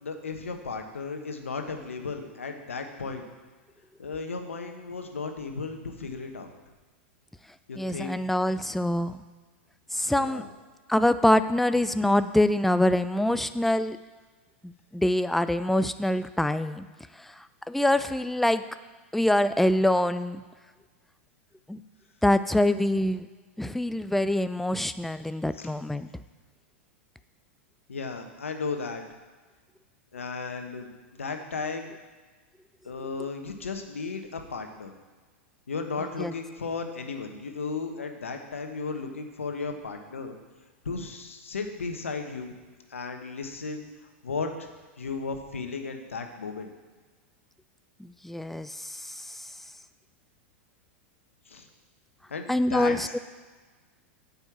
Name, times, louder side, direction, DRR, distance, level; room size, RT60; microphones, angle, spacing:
voice 1, 0.0-3.3 4.0-6.5 7.7-8.2 10.2-10.5 25.6-25.7 27.9-29.0 30.1-31.9 32.8-34.9 35.7-40.4 40.8-42.5 42.9-44.7 45.0-46.7 51.5-51.6 52.3-53.2, left 4 dB, 85° left, 5 dB, 1.2 m, -35 dB
voice 2, 7.8-9.2 9.9-10.4 10.9-14.0 14.6-16.9 17.2-18.6 19.1-20.4 21.7-21.8 22.2-23.3 23.6-26.1 36.2-36.3 48.0-49.3 52.5-53.2, left 1 dB, 5° left, 12 dB, 0.4 m, -25 dB
9.1 x 5.4 x 7.3 m, 1.4 s
hypercardioid pair, 100°, 7 cm